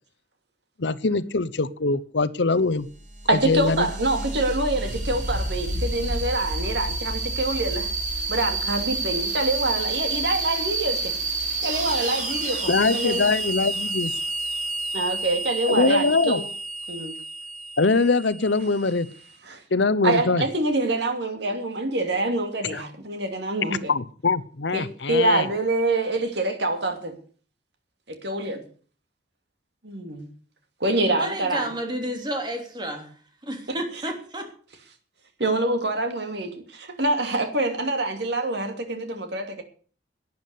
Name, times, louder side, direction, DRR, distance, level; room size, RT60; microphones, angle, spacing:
voice 1, 0.8-2.9 3.5-3.9 12.7-14.1 15.7-16.4 17.8-19.1 19.7-20.4 22.7-22.8 23.9-25.5, left 3 dB, 70° left, 0.9 m, -22 dB
sound 1, 2.8-19.2, right 2 dB, 45° right, 6.8 m, -29 dB
voice 2, 3.3-7.9 8.3-11.1 11.6-13.2 14.9-16.4 16.9-17.1 19.5-19.6 20.0-23.9 24.7-27.2 28.2-28.6 29.8-30.3 30.8-31.7 33.7-33.8 35.4-39.6, right 2 dB, 60° right, 2.8 m, -25 dB
voice 3, 31.1-33.1 33.4-34.5, right 1 dB, 25° right, 3.3 m, -31 dB
12.0 x 9.6 x 8.3 m
head